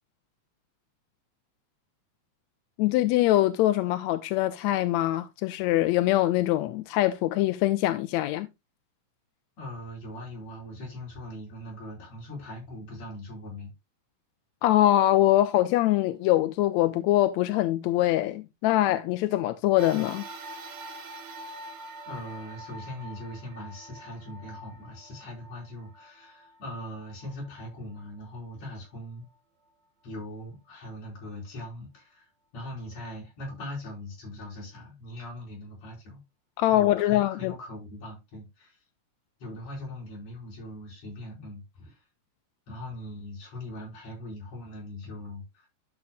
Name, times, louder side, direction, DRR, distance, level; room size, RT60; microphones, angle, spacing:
voice 1, 2.8-8.5 14.6-20.2 36.6-37.5, left 14 dB, 80° left, 1.8 m, -23 dB
voice 2, 9.6-13.7 22.1-29.3 30.0-32.2 32.5-36.2 36.6-38.8 39.4-42.0 42.7-45.7, left 1 dB, 60° left, 5.9 m, -41 dB
sound 1, 19.8-28.4 29.0-29.1 30.2-30.3, right 1 dB, 60° right, 1.1 m, -45 dB
12.0 x 7.0 x 2.2 m
omnidirectional pair, 3.4 m